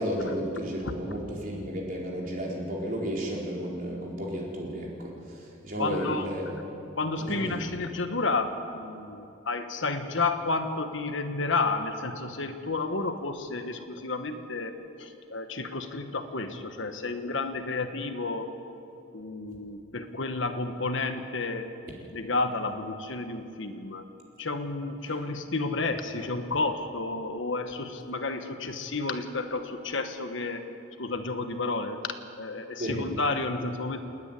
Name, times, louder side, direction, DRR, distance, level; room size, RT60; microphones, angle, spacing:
voice 1, 0.0-5.1 5.6-6.5 7.2-7.6 32.8-33.0, equal, 45° right, -3 dB, 4.4 m, -32 dB
voice 2, 5.8-6.5 7.0-18.5 19.1-21.7 22.1-24.0 24.4-30.7 31.0-34.0, left 3 dB, 65° left, 7 dB, 1.3 m, -31 dB
29.0 x 9.8 x 9.9 m, 2.8 s
head